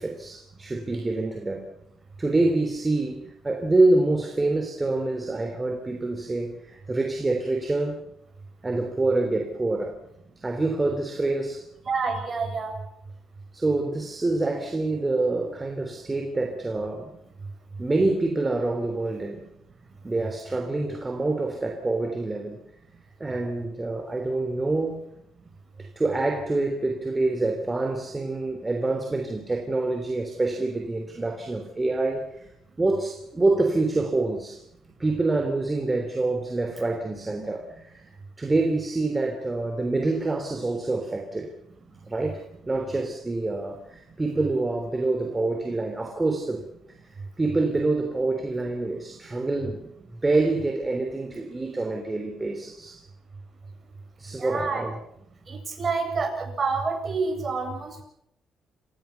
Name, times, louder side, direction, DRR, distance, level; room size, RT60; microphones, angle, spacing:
voice 1, 0.0-1.7 2.2-8.0 8.6-10.0 10.4-11.7 13.5-17.1 17.8-19.5 20.0-22.6 23.2-25.0 25.8-32.5 32.8-34.6 35.0-41.5 42.1-46.7 47.0-53.0 54.2-55.0, right 2 dB, 20° right, 3.3 m, -26 dB
voice 2, 11.9-12.7 54.4-54.8 55.5-58.0, right 4 dB, 35° right, 7.9 m, -28 dB
28.5 x 16.0 x 7.1 m
cardioid pair, 90°, 0 cm